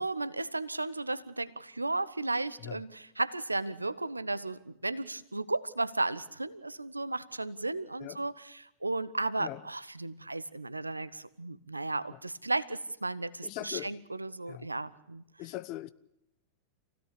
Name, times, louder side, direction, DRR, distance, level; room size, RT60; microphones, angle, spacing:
voice 1, 0.0-15.2, right 2 dB, 85° right, 0.8 m, -34 dB
voice 2, 13.4-13.9 14.5-14.7 15.4-15.9, left 16 dB, 40° left, 0.8 m, -40 dB
27.0 x 17.0 x 8.5 m
figure-of-eight pair, 90°, 0 cm